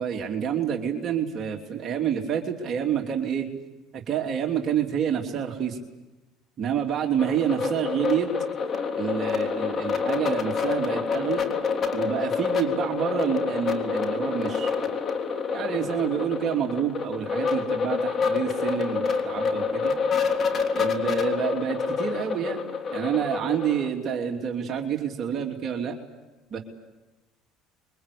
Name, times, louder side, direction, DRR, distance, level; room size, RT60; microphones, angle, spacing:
voice 1, 0.0-3.5 3.9-5.8 6.6-8.3 8.9-11.4 11.9-15.0 15.5-19.9 20.7-22.6 22.9-26.0 26.5-26.6, right 8 dB, 45° right, 2 dB, 3.0 m, -28 dB
sound 1, 7.2-23.9, left 5 dB, 40° left, 3.5 m, -27 dB
27.0 x 23.5 x 8.5 m, 1.1 s
supercardioid pair, 90°, 0 cm